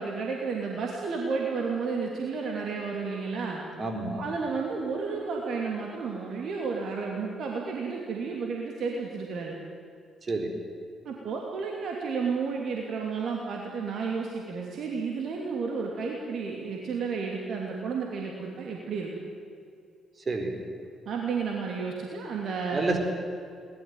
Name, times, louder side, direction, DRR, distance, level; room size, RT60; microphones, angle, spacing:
voice 1, 0.0-3.6 4.2-9.5 11.0-19.1 21.0-23.0, right 5 dB, 55° right, 0 dB, 2.8 m, -32 dB
voice 2, 3.8-4.3 10.2-10.6 20.3-20.6 22.7-23.0, right 3 dB, 35° right, 5 dB, 4.4 m, -29 dB
22.5 x 19.0 x 9.3 m, 2.4 s
figure-of-eight pair, 40°, 0 cm